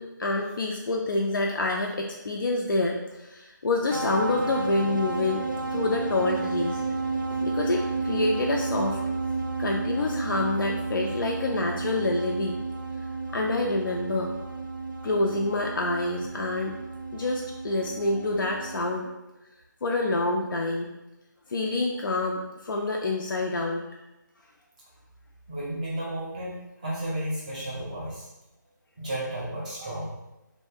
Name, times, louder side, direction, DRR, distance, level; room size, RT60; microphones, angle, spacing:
voice 1, 0.0-5.4 5.7-6.8 7.4-9.0 9.6-12.6 13.3-14.3 15.0-16.7 17.1-19.1 19.8-20.9 21.5-23.8, left 2 dB, 85° left, 0 dB, 0.4 m, -27 dB
sound 1, 3.9-18.8, right 3 dB, 80° right, 0.4 m, -32 dB
voice 2, 25.5-28.3 29.0-30.1, right 1 dB, 20° right, -6 dB, 0.5 m, -33 dB
2.6 x 2.1 x 3.4 m, 0.99 s
figure-of-eight pair, 165°, 11 cm